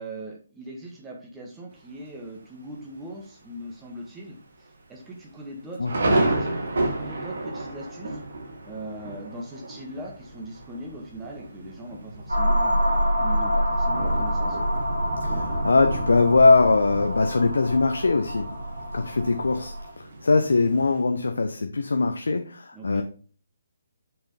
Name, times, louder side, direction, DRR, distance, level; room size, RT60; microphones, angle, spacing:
voice 1, 0.0-6.5 6.9-8.2 8.6-14.6 22.7-23.0, right 1 dB, 10° right, -1 dB, 1.6 m, -40 dB
Thunder, 1.7-2.3 2.8-2.9 3.2-3.6 4.0-4.1 4.8-21.0, right 2 dB, 55° right, 1.9 m, -32 dB
voice 2, 5.8-6.2 15.2-18.5 18.9-23.0, left 3 dB, 65° left, 6 dB, 0.7 m, -21 dB
sound 1, 12.3-19.9, equal, 85° right, 2.6 m, -26 dB
6.7 x 5.7 x 4.2 m, 0.40 s
figure-of-eight pair, 140°, 0 cm